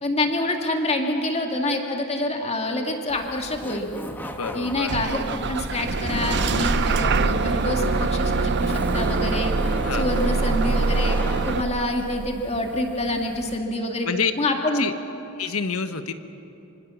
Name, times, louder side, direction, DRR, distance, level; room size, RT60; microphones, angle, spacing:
voice 1, 0.0-3.9 4.5-9.5 9.9-11.2 11.5-14.1 14.4-14.9, left 1 dB, 30° left, 3 dB, 2.4 m, -26 dB
Laughter, 3.1-13.6, equal, 10° left, 1.4 m, -35 dB
voice 2, 4.2-4.9 9.8-10.1 14.0-14.3 14.7-14.9 15.4-16.1, left 5 dB, 75° left, 9 dB, 1.3 m, -27 dB
Bus / Engine starting, 4.9-11.6, right 3 dB, 55° right, 0.7 m, -23 dB
25.0 x 25.0 x 7.2 m, 2.9 s
head